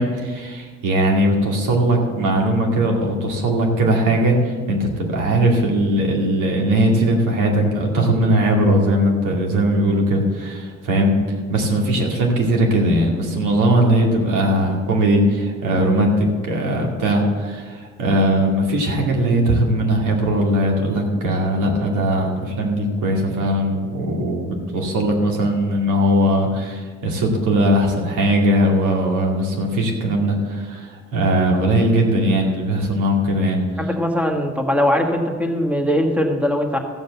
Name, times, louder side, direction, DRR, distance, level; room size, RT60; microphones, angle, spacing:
voice 1, 0.0-11.2 11.5-33.9, right 1 dB, 85° right, 0 dB, 2.5 m, -19 dB
voice 2, 33.8-36.8, equal, 5° right, 3 dB, 1.5 m, -20 dB
14.0 x 5.1 x 8.1 m, 1.5 s
cardioid pair, 90°, 30 cm